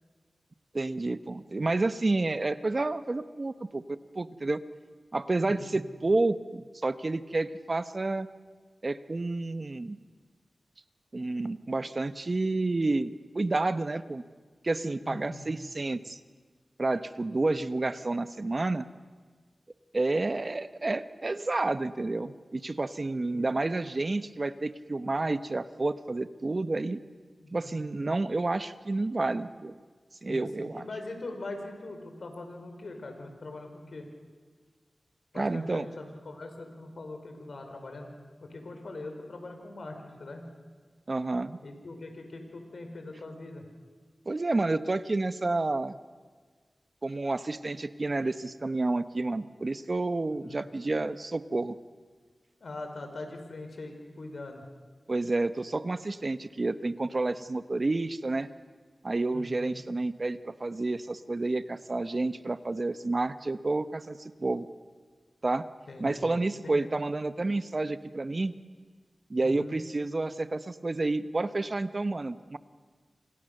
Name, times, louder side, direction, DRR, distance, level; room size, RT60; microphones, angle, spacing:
voice 1, 0.7-4.6 5.1-8.3 8.8-10.0 11.1-14.2 14.6-16.2 16.8-18.9 19.9-27.0 27.5-29.7 30.2-30.8 35.4-35.9 41.1-41.6 44.2-46.0 47.0-51.7 55.1-58.5 59.0-64.7 65.4-65.7 66.0-68.5 69.3-72.6, right 2 dB, 45° right, 11 dB, 1.2 m, -30 dB
voice 2, 5.4-5.7 15.0-15.5 23.3-23.5 27.4-27.8 30.3-34.1 35.3-38.1 38.4-40.4 41.6-43.6 50.3-50.6 52.6-54.6 59.3-59.7 65.9-66.4 66.6-66.9 69.4-69.8, left 2 dB, 75° left, 5 dB, 5.1 m, -42 dB
28.0 x 27.0 x 6.8 m, 1.5 s
cardioid pair, 55°, 0 cm